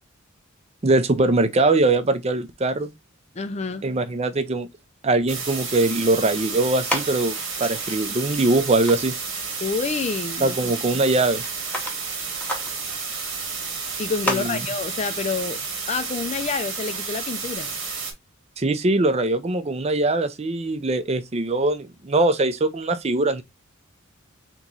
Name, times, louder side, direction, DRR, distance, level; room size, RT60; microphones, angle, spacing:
voice 1, 0.8-2.9 3.8-4.7 5.0-9.1 10.4-11.4 14.3-14.6 18.6-23.4, right 2 dB, 30° right, 0.5 m, -22 dB
voice 2, 3.4-3.9 9.6-10.6 14.0-17.7, left 4 dB, 30° left, 0.4 m, -28 dB
sound 1, 5.3-18.1, right 5 dB, 70° right, 1.5 m, -31 dB
sound 2, 6.0-17.6, left 1 dB, 5° left, 0.8 m, -37 dB
3.5 x 3.0 x 3.9 m
head